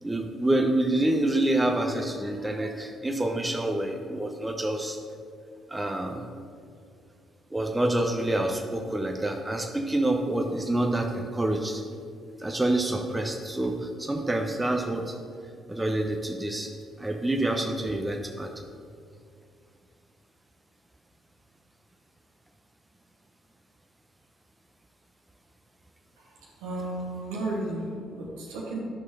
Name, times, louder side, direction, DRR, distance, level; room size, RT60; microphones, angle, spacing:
voice 1, 0.0-5.0 5.7-6.3 7.5-11.8 12.4-15.1 15.7-16.7 17.0-18.5, right 1 dB, 15° right, 3 dB, 0.8 m, -27 dB
voice 2, 26.2-28.8, right 2 dB, 70° right, -3 dB, 1.5 m, -34 dB
11.0 x 6.3 x 3.8 m, 2.3 s
figure-of-eight pair, 45°, 0 cm